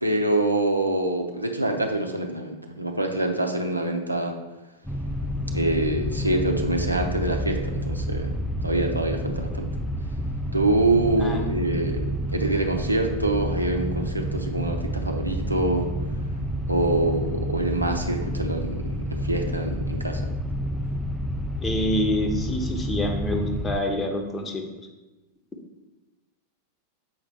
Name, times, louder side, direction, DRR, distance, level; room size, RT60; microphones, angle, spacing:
voice 1, 0.0-4.4 5.5-8.3 8.6-9.7 10.5-15.9 16.7-20.3, right 2 dB, 85° right, 4 dB, 0.6 m, -25 dB
sound 1, 4.8-23.8, equal, ahead, 0.4 m, -29 dB
voice 2, 21.6-24.6, left 1 dB, 15° left, 3 dB, 0.9 m, -27 dB
7.0 x 4.7 x 3.5 m, 1.1 s
figure-of-eight pair, 90°, 0 cm